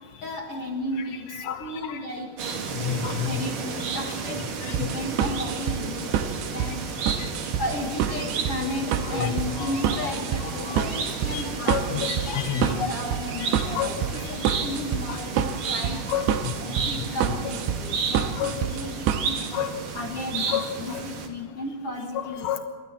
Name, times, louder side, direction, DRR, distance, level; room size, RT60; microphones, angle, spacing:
voice 1, 0.2-2.3 3.2-6.8 7.6-12.1 12.5-16.0 16.6-19.4 19.9-22.5, left 1 dB, 50° left, 0 dB, 1.9 m, -34 dB
voice 2, 1.3-2.0 2.6-3.4 4.6-4.9 7.2-7.5 8.8-10.1 10.4-11.0 11.3-12.9 13.5-14.6 15.1-15.2 16.1-16.9 17.9-18.6 19.5-19.7 20.5-21.0 22.1-22.6, left 8 dB, 90° left, 7 dB, 1.4 m, -31 dB
sound 1, 2.4-21.3, right 5 dB, 55° right, 3.4 m, -33 dB
sound 2, 4.7-19.5, right 8 dB, 80° right, 3.0 m, -28 dB
sound 3, 8.9-16.6, left 2 dB, 35° left, 2.7 m, -48 dB
28.0 x 14.0 x 7.4 m, 1.4 s
omnidirectional pair, 4.9 m